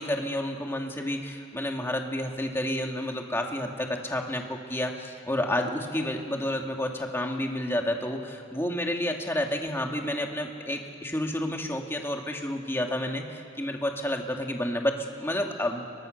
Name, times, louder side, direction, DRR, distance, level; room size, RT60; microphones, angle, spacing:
voice 1, 0.0-15.9, left 1 dB, 10° left, 2 dB, 2.3 m, -30 dB
29.0 x 23.0 x 6.6 m, 2.3 s
head